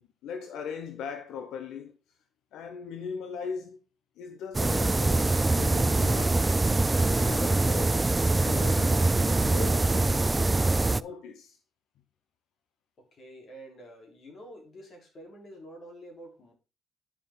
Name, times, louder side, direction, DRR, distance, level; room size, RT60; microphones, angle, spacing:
voice 1, 0.0-2.0 2.5-3.8 4.2-6.4 6.9-11.6, left 6 dB, 85° left, 0.8 m, -39 dB
sound 1, 4.5-11.0, right 2 dB, 20° right, 0.3 m, -24 dB
voice 2, 13.0-16.5, right 1 dB, 50° left, 3.8 m, -48 dB
9.9 x 5.7 x 3.7 m
cardioid pair, 90°, 0 cm